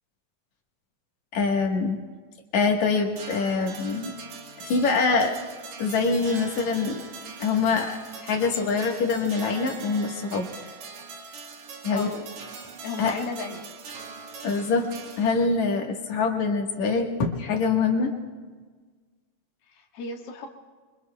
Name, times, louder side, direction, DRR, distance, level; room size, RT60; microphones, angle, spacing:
voice 1, 1.3-2.0 2.5-4.2 4.6-5.3 5.8-7.1 7.4-10.5 11.8-12.1 13.0-13.2 14.4-14.9 15.2-18.1, left 4 dB, 75° left, 2 dB, 2.8 m, -24 dB
sound 1, 3.2-15.6, right 5 dB, 75° right, 2.8 m, -42 dB
voice 2, 11.9-12.3 12.8-13.6 19.7-20.5, left 4 dB, 60° left, 0 dB, 2.2 m, -34 dB
26.0 x 24.0 x 2.3 m, 1.4 s
omnidirectional pair, 3.3 m